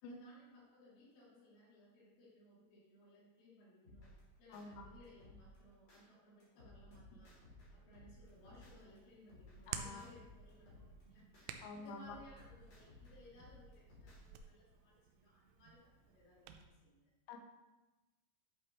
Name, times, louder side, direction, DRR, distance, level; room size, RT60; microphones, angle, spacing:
voice 1, 0.0-4.1 4.4-7.4 7.7-17.1, left 1 dB, 60° left, -6 dB, 4.9 m, -62 dB
sound 1, 3.8-6.0 6.4-9.0 9.3-11.5 11.9-14.4, left 1 dB, 35° left, 3.7 m, -60 dB
voice 2, 4.5-4.8 9.7-10.1 11.6-12.2 17.3-17.4, left 4 dB, 85° left, 3 dB, 3.7 m, -48 dB
Hands, 8.2-16.7, right 8 dB, 85° right, 2.7 m, -53 dB
10.5 x 8.4 x 3.1 m, 1.1 s
omnidirectional pair, 5.9 m